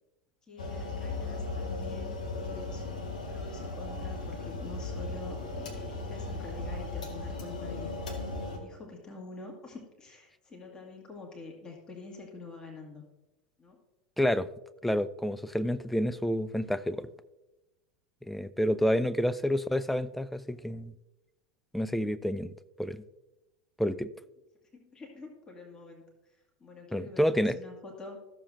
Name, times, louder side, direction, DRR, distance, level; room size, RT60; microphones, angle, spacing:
voice 1, 0.5-2.9 3.3-7.9 8.4-13.0 13.6-13.8 18.9-19.1 24.9-26.0 26.6-28.2, left 3 dB, 20° left, 0 dB, 1.9 m, -46 dB
sound 1, 0.6-8.6, left 3 dB, 70° left, 1.4 m, -37 dB
voice 2, 14.2-14.5 14.8-17.1 18.2-20.9 21.7-22.5 22.8-23.0 23.8-24.1 26.9-27.6, equal, 5° left, 14 dB, 0.3 m, -29 dB
13.5 x 7.0 x 2.7 m, 1.0 s
figure-of-eight pair, 80°, 4 cm